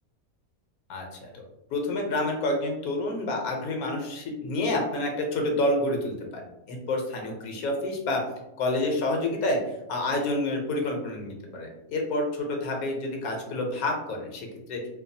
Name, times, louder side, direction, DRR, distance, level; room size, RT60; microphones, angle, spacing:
voice 1, 0.9-1.3 1.7-8.2 8.6-9.6 9.9-14.9, left 2 dB, 80° left, 1 dB, 1.1 m, -28 dB
2.6 x 2.3 x 2.6 m, 0.90 s
omnidirectional pair, 1.5 m